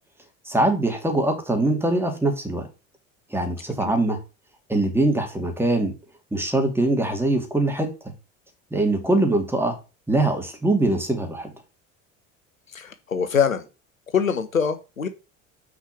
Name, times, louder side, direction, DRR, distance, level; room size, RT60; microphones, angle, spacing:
voice 1, 0.4-2.7 3.3-4.2 4.7-5.9 6.3-7.9 8.7-9.8 10.1-11.5, right 2 dB, 5° right, 4 dB, 2.7 m, -22 dB
voice 2, 12.7-13.6 14.1-15.1, left 7 dB, 80° left, 10 dB, 1.1 m, -24 dB
6.3 x 5.2 x 5.9 m, 0.30 s
figure-of-eight pair, 65°, 39 cm